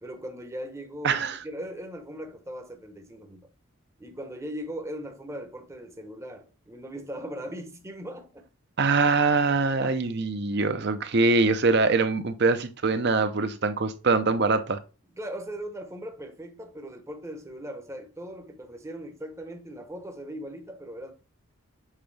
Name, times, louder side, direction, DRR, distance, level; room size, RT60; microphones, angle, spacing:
voice 1, 0.0-3.5 4.0-8.5 9.8-10.1 15.2-21.1, equal, 15° right, 0.8 m, -39 dB
voice 2, 1.0-1.4 8.8-14.8, right 3 dB, 50° right, 0.6 m, -23 dB
7.4 x 3.9 x 3.3 m
head